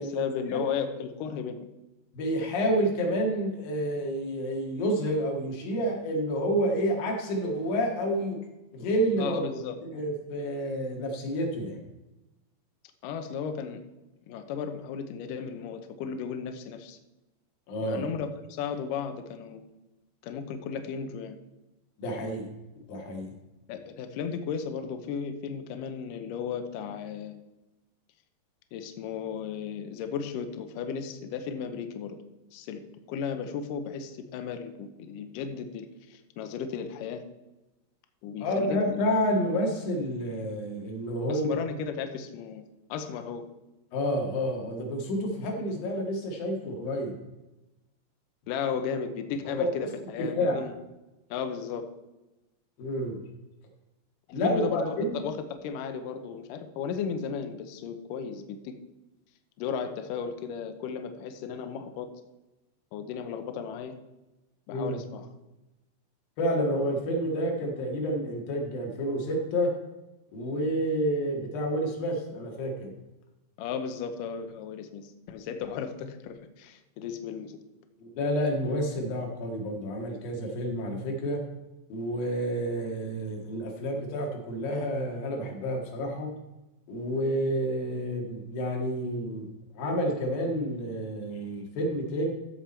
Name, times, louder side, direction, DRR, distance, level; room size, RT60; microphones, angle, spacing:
voice 1, 0.0-1.6 9.2-9.8 13.0-13.8 14.3-17.0 17.8-19.7 20.2-21.4 23.7-27.3 28.7-32.2 32.5-32.8 33.1-37.2 38.2-38.8 41.3-42.6 42.9-43.5 48.5-50.7 51.3-51.9 54.3-58.7 59.6-62.1 62.9-64.0 64.7-65.3 73.6-77.6, left 7 dB, 90° left, 7 dB, 1.9 m, -35 dB
voice 2, 2.1-8.4 8.7-9.4 9.9-11.8 17.7-18.0 22.0-22.5 22.9-23.3 38.4-41.5 43.9-47.1 49.6-49.9 50.3-50.6 52.8-53.2 54.3-55.2 64.7-65.0 66.4-69.7 70.3-72.9 78.0-81.4 81.9-86.3 86.9-89.5 89.8-92.3, equal, 60° left, 0 dB, 3.4 m, -29 dB
14.0 x 7.2 x 4.4 m, 1.0 s
omnidirectional pair, 5.0 m